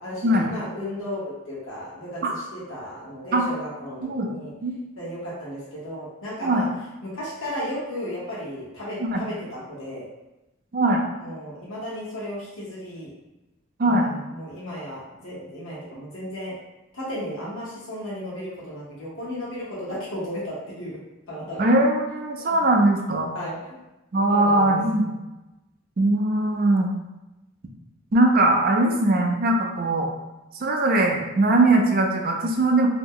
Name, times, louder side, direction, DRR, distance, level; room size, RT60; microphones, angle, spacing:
voice 1, 0.0-4.5 5.0-6.7 7.0-10.0 11.2-13.1 13.8-16.5 16.9-21.0 21.3-21.7 22.4-22.5 23.3-23.8 24.3-24.7, equal, 75° left, -7 dB, 1.0 m, -34 dB
voice 2, 4.0-4.3 4.6-4.7 6.4-6.7 9.0-9.2 10.7-11.0 13.8-14.1 21.6-23.3 24.1-25.1 26.0-26.9 28.1-30.1 30.5-32.9, right 2 dB, 45° right, 1 dB, 0.4 m, -20 dB
2.8 x 2.1 x 3.6 m, 0.99 s
head